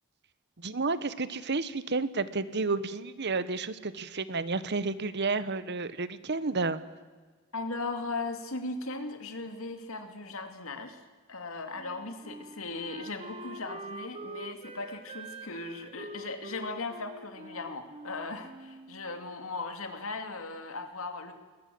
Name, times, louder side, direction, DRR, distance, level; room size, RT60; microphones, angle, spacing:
voice 1, 0.6-6.8, right 3 dB, 55° right, 14 dB, 1.1 m, -31 dB
voice 2, 7.5-11.0 11.3-21.3, left 3 dB, 80° left, 7 dB, 2.7 m, -38 dB
Wind instrument woodwind instrument, 11.7-19.3, right 2 dB, 30° right, 1.2 m, -45 dB
21.5 x 19.5 x 7.8 m, 1.4 s
head